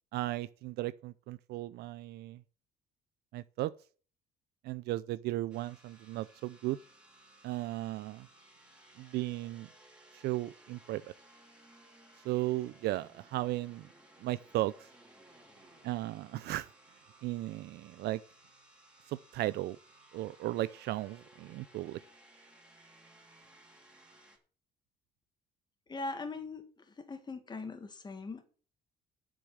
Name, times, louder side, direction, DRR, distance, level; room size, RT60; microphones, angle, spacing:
voice 1, 0.1-2.4 3.3-3.7 4.6-6.8 7.4-8.3 9.0-9.7 10.1-11.0 12.2-13.9 14.2-14.9 15.8-16.7 17.2-18.2 19.1-19.8 20.1-22.0, right 16 dB, 75° right, 0.5 m, -35 dB
sound 1, 5.5-24.4, right 1 dB, 5° right, 3.3 m, -60 dB
voice 2, 25.9-28.5, left 3 dB, 25° left, 1.9 m, -41 dB
8.2 x 7.3 x 7.4 m
cardioid pair, 110°, 17 cm